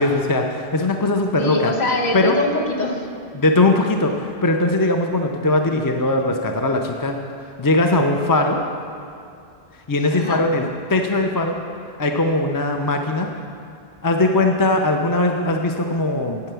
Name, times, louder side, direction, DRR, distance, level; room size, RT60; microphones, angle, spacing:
voice 1, 0.0-1.7 2.1-2.4 3.3-7.2 7.6-8.6 9.9-11.6 12.0-13.3 14.0-16.4, left 2 dB, 25° left, 3 dB, 0.5 m, -20 dB
voice 2, 1.4-3.1 10.1-10.4, left 2 dB, 45° left, 0 dB, 1.3 m, -23 dB
9.5 x 8.6 x 6.9 m, 2.6 s
omnidirectional pair, 1.1 m